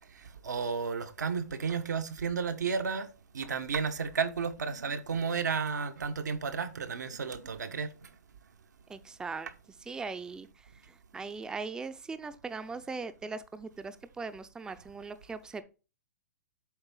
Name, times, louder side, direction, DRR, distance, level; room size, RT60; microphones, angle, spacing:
voice 1, 0.1-3.1 3.3-8.1, right 5 dB, 90° right, 1.1 m, -33 dB
voice 2, 8.9-9.5 9.9-10.5 11.1-15.6, right 4 dB, 10° right, 0.5 m, -39 dB
8.0 x 3.5 x 5.4 m
hypercardioid pair, 135°, 9 cm